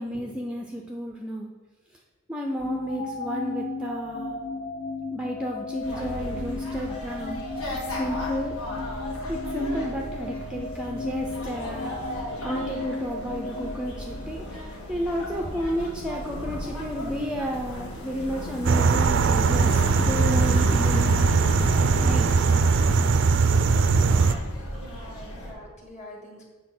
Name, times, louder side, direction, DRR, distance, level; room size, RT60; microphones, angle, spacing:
voice 1, 0.0-1.5 2.3-4.4 5.1-7.4 8.0-8.6 9.3-12.0 12.4-21.4 21.8-22.3, equal, 5° right, 0 dB, 0.5 m, -32 dB
sound 1, 2.6-14.7, left 3 dB, 50° left, 1.0 m, -35 dB
sound 2, 5.8-25.5, left 1 dB, 75° left, 1.7 m, -36 dB
sound 3, 18.6-24.3, right 4 dB, 55° right, 0.4 m, -20 dB
voice 2, 24.8-26.5, equal, 30° left, -1 dB, 1.7 m, -45 dB
8.0 x 4.1 x 6.0 m, 1.3 s
head